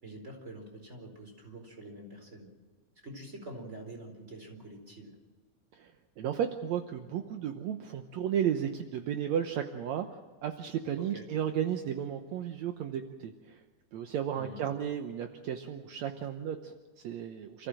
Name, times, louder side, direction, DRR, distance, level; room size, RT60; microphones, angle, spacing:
voice 1, 0.0-2.5 3.0-5.1 11.0-11.2 14.3-14.6, right 1 dB, 15° right, 3 dB, 4.4 m, -46 dB
voice 2, 5.7-13.6 13.9-17.7, right 9 dB, 70° right, 6 dB, 1.7 m, -34 dB
28.5 x 15.0 x 7.7 m, 1.4 s
omnidirectional pair, 4.3 m